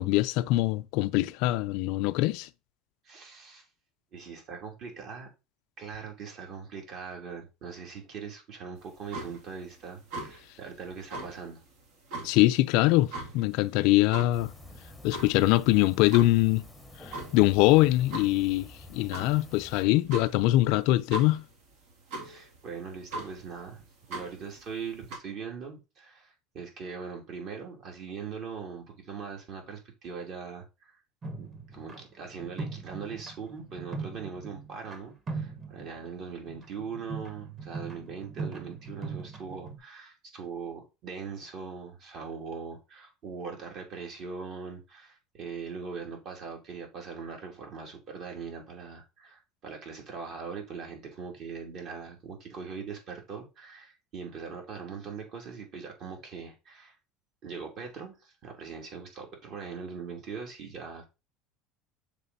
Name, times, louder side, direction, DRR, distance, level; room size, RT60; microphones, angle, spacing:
voice 1, 0.0-2.5 12.2-14.5 15.0-16.6 17.1-21.4, left 17 dB, 70° left, 0.4 m, -23 dB
voice 2, 3.0-3.6 4.1-5.3 5.8-11.6 22.2-23.8 24.1-31.0 31.4-57.0 57.4-61.0, right 5 dB, 50° right, 2.5 m, -41 dB
sound 1, 8.8-25.2, right 2 dB, 70° right, 2.3 m, -43 dB
sound 2, 14.3-19.9, left 1 dB, 5° left, 0.8 m, -49 dB
sound 3, 31.2-35.0 35.3-39.8, right 4 dB, 30° right, 1.5 m, -40 dB
6.6 x 3.8 x 4.0 m
supercardioid pair, 120°, 0 cm